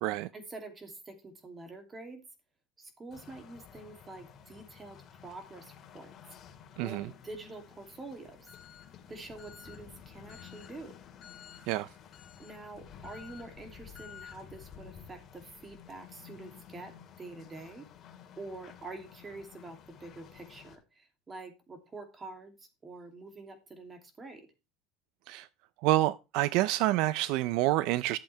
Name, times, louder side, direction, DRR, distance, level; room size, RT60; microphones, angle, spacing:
voice 1, 0.3-2.2 2.8-6.1 6.8-8.5 9.1-10.9 12.4-16.9 17.2-17.9 18.4-24.5, right 3 dB, 20° right, 2.7 m, -46 dB
sound 1, 3.1-20.8, left 8 dB, 40° left, 2.5 m, -52 dB
voice 2, 25.8-28.2, right 16 dB, 65° right, 0.4 m, -27 dB
12.0 x 7.8 x 3.3 m
supercardioid pair, 130°, 0 cm